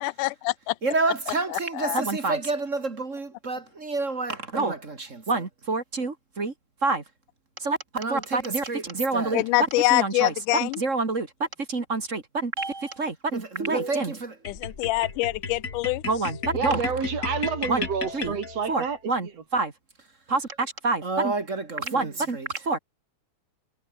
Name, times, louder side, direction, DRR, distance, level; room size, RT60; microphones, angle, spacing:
voice 1, 0.0-0.8 1.5-2.0 9.3-10.8 14.5-16.0, left 20 dB, 85° left, 2.1 m, -25 dB
voice 2, 0.8-6.5 6.8-7.0 7.6-9.4 9.9-14.4 16.1-16.8 17.7-17.9 18.1-18.4 18.7-19.7 20.3-22.8, right 3 dB, 25° right, 2.0 m, -27 dB
sound 1, 14.4-18.9, left 4 dB, 30° left, 2.4 m, -34 dB
voice 3, 16.5-19.0 21.8-22.1, right 6 dB, 55° right, 3.5 m, -29 dB
omnidirectional pair, 3.6 m